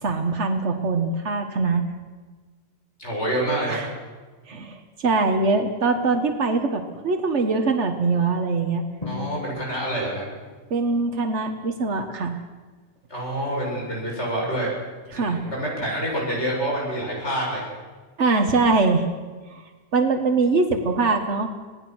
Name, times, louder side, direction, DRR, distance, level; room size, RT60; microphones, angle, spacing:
voice 1, 0.0-1.8 3.7-3.9 4.5-8.8 10.7-12.4 15.1-15.4 18.2-19.0 19.5-19.6 19.9-21.5, right 3 dB, 90° right, 6 dB, 1.7 m, -22 dB
voice 2, 3.0-3.8 9.1-10.2 13.1-14.7 15.1-17.7, right 1 dB, 80° left, -3 dB, 7.6 m, -27 dB
Drum, 9.0-10.7, left 4 dB, 35° left, 2.4 m, -37 dB
27.0 x 18.0 x 6.3 m, 1.4 s
omnidirectional pair, 1.2 m